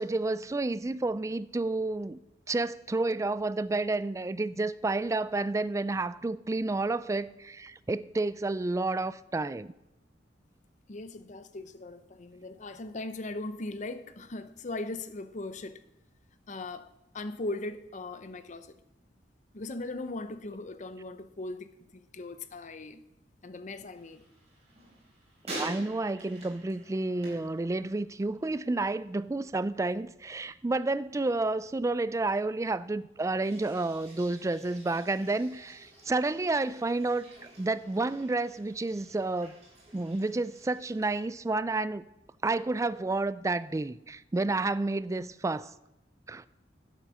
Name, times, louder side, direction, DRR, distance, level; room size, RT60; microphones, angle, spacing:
voice 1, 0.0-2.2 2.5-9.7 25.5-37.2 37.6-39.6 39.9-42.0 42.4-45.7 46.3-46.5, right 2 dB, 15° right, 0.3 m, -30 dB
voice 2, 10.9-15.8 16.5-16.9 17.1-18.7 19.5-23.0 23.4-24.2, left 2 dB, 45° left, 0.7 m, -39 dB
sound 1, 23.9-28.4 28.6-29.2 33.4-41.3, right 1 dB, 40° right, 4.6 m, -48 dB
11.0 x 8.2 x 6.1 m
head